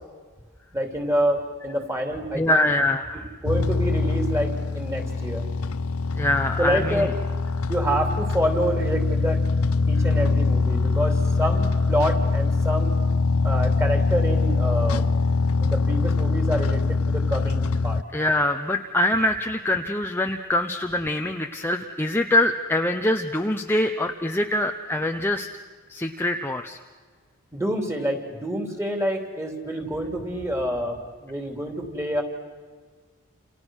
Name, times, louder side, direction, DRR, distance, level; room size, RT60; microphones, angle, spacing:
voice 1, 0.7-2.6 3.4-5.4 6.6-7.1 7.7-9.4 9.9-13.0 13.4-15.0 15.6-18.0 27.5-32.2, equal, 10° right, 4 dB, 3.0 m, -27 dB
voice 2, 2.4-3.2 6.1-7.1 18.1-25.5 25.9-26.8, left 1 dB, 10° left, 4 dB, 0.8 m, -24 dB
sound 1, 3.5-18.0, left 3 dB, 80° left, 0.7 m, -23 dB
29.0 x 28.5 x 6.4 m, 1.5 s
head